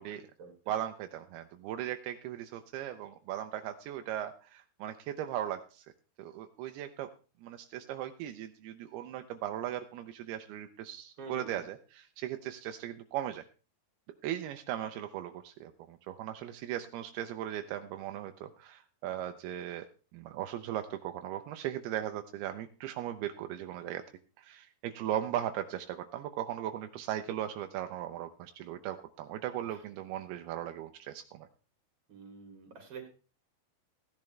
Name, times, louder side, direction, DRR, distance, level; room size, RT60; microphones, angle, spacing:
voice 1, 0.0-0.5 11.2-11.6 29.7-29.8 32.1-33.1, right 5 dB, 40° right, 2 dB, 3.7 m, -47 dB
voice 2, 0.7-5.8 6.2-7.1 7.4-13.4 14.2-19.9 20.1-24.0 24.4-31.5, right 11 dB, 85° right, 7 dB, 2.7 m, -38 dB
16.0 x 10.5 x 3.3 m, 0.36 s
omnidirectional pair, 4.5 m